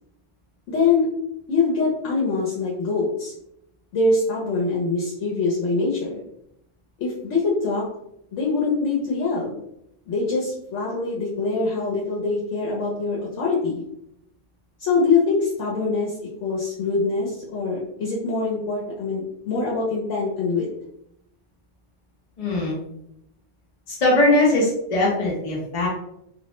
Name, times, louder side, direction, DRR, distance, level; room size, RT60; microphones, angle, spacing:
voice 1, 0.7-1.2 1.5-3.3 3.9-6.2 7.0-7.8 8.3-9.5 10.1-13.8 14.8-20.7, left 4 dB, 80° left, -4 dB, 0.9 m, -24 dB
voice 2, 22.4-22.8 23.9-25.9, left 2 dB, 45° left, -5 dB, 0.5 m, -20 dB
2.4 x 2.0 x 2.9 m, 0.79 s
omnidirectional pair, 1.2 m